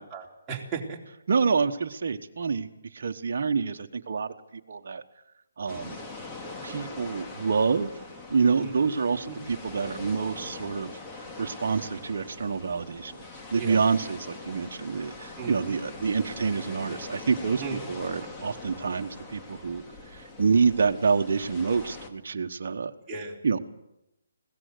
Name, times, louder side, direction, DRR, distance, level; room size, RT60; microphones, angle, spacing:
voice 1, 0.1-1.0 8.6-8.7 9.3-9.4 13.6-13.8 15.4-15.8 17.6-17.8 23.1-23.4, right 5 dB, 15° right, -3 dB, 3.8 m, -36 dB
voice 2, 1.3-5.0 5.6-6.0 6.6-7.9 8.3-10.9 11.2-13.1 13.5-17.6 17.9-19.8 20.1-22.9 23.4-23.6, right 5 dB, 60° right, 4 dB, 1.3 m, -27 dB
sound 1, 5.7-22.1, left 3 dB, 15° left, 2.4 m, -42 dB
20.5 x 17.5 x 8.0 m, 0.88 s
figure-of-eight pair, 145°, 0 cm